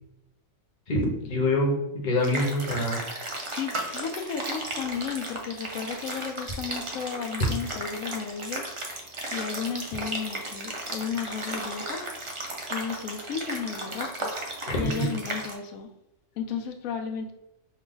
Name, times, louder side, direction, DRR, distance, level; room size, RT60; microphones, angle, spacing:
voice 1, 0.9-3.0 14.7-14.8, left 1 dB, 40° left, -1 dB, 1.0 m, -25 dB
sound 1, 2.2-15.5, right 2 dB, 30° right, 0.6 m, -35 dB
voice 2, 3.5-12.3 12.7-14.3 14.8-15.9 16.4-17.3, left 6 dB, 90° left, 5 dB, 1.1 m, -34 dB
5.3 x 2.4 x 3.8 m, 0.87 s
omnidirectional pair, 1.4 m